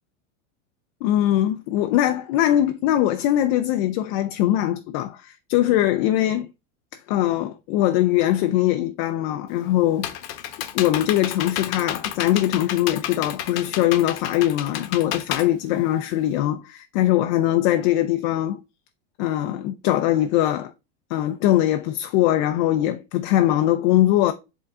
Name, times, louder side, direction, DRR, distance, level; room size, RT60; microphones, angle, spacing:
voice 1, 1.0-6.5 7.1-10.1 10.7-18.6 19.2-20.7 21.1-24.3, left 13 dB, 40° left, 0.5 m, -21 dB
Computer keyboard, 9.5-16.4, left 11 dB, 65° left, 1.0 m, -31 dB
7.8 x 3.6 x 3.6 m
supercardioid pair, 150°, 37 cm